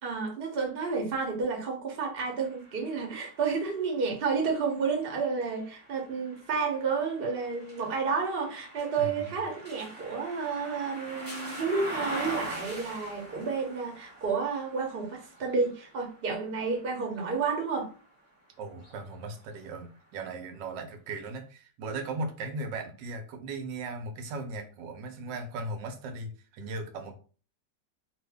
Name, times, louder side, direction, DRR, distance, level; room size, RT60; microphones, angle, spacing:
voice 1, 0.0-17.9, right 5 dB, 40° right, 0 dB, 0.9 m, -31 dB
sound 1, 2.2-18.1 18.7-19.9, right 1 dB, 5° right, 1.1 m, -44 dB
voice 2, 9.0-9.4 18.6-27.1, right 2 dB, 85° right, 5 dB, 1.3 m, -37 dB
2.7 x 2.6 x 3.4 m, 0.38 s
omnidirectional pair, 1.9 m